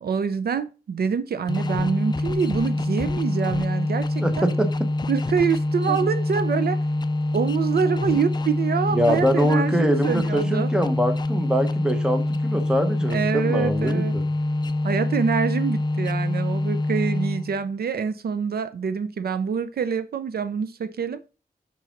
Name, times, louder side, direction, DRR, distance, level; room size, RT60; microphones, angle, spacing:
voice 1, 0.0-4.5 5.1-6.8 7.3-10.7 13.1-14.2 14.8-21.2, right 6 dB, 75° right, 0.5 m, -26 dB
sound 1, 1.5-17.6, left 2 dB, 25° left, 0.4 m, -25 dB
voice 2, 4.2-4.9 5.9-6.0 8.9-14.2, equal, 5° right, 0.9 m, -24 dB
5.6 x 4.7 x 5.8 m
wide cardioid pair, 165°, 16 cm